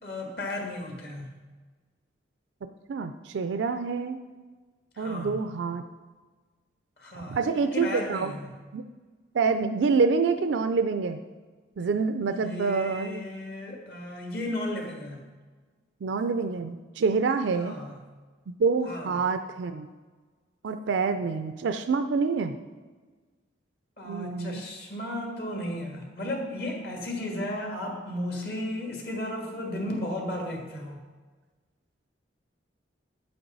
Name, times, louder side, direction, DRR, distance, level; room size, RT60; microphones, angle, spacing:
voice 1, 0.0-1.4 5.0-5.4 7.0-7.4 7.7-8.6 12.3-15.2 17.6-18.0 18.8-19.1 24.0-31.0, left 1 dB, 55° left, 1 dB, 1.8 m, -34 dB
voice 2, 2.9-4.2 5.0-5.8 7.2-8.3 8.7-8.8 9.3-11.2 11.8-13.2 16.0-17.7 18.6-19.9 20.6-22.6 24.1-24.6, right 4 dB, 75° right, 9 dB, 0.4 m, -27 dB
9.2 x 7.8 x 4.0 m, 1.4 s
head